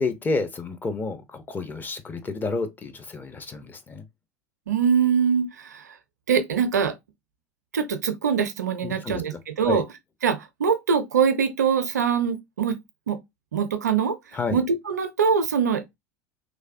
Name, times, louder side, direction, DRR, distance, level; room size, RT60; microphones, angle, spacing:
voice 1, 0.0-4.0 8.8-9.8 14.3-14.6, left 3 dB, 20° left, 0.6 m, -30 dB
voice 2, 4.7-5.8 6.3-6.9 7.7-9.8 10.2-12.8 13.1-13.2 13.5-14.2 14.5-16.0, right 6 dB, 80° right, 0.5 m, -23 dB
3.2 x 2.1 x 2.4 m
hypercardioid pair, 80°, 9 cm